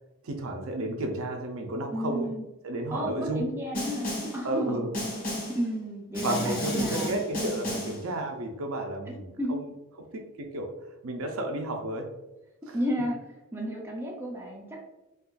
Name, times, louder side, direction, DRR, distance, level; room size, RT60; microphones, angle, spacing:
voice 1, 0.2-2.3 2.6-3.5 4.4-4.9 6.2-9.6 10.0-10.7 11.0-12.1 12.7-12.8, right 1 dB, 70° right, 3 dB, 0.5 m, -32 dB
voice 2, 1.9-2.4 2.9-4.9 5.5-7.1 9.1-9.6 12.7-13.2 13.5-14.8, equal, 10° right, -2 dB, 0.4 m, -32 dB
Snare drum, 3.7-4.4 4.9-5.6 6.1-8.0, left 1 dB, 40° left, 1.2 m, -32 dB
3.7 x 2.3 x 2.4 m, 1.0 s
head